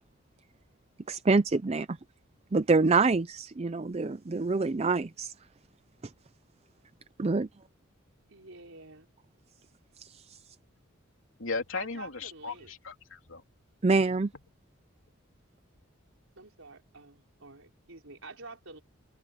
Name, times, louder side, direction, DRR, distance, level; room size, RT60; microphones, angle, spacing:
voice 1, 1.1-2.0 2.5-5.3 7.2-7.5 10.0-10.4 13.8-14.3, right 3 dB, 30° right, 0.4 m, -26 dB
voice 2, 8.3-9.1 11.7-12.7 16.4-18.8, right 3 dB, 75° right, 4.4 m, -48 dB
voice 3, 11.4-13.4, left 4 dB, 70° left, 3.3 m, -36 dB
head